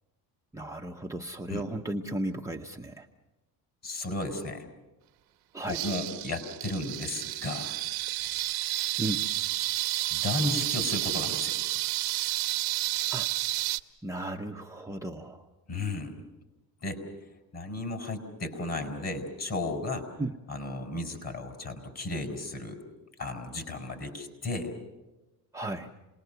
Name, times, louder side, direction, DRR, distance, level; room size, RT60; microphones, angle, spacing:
voice 1, 0.5-3.1 5.5-5.8 9.0-9.3 13.1-13.3 14.0-15.5 20.2-20.4 25.5-25.9, right 1 dB, 5° right, 1 dB, 0.8 m, -35 dB
voice 2, 3.8-4.7 5.7-7.7 10.1-11.6 15.7-16.2 16.8-17.1 17.5-20.0 20.5-22.8 23.2-24.7, left 2 dB, 35° left, 6 dB, 4.6 m, -34 dB
sound 1, 5.7-13.8, right 17 dB, 75° right, 1.0 m, -31 dB
28.0 x 20.0 x 6.8 m, 1.1 s
cardioid pair, 110°, 42 cm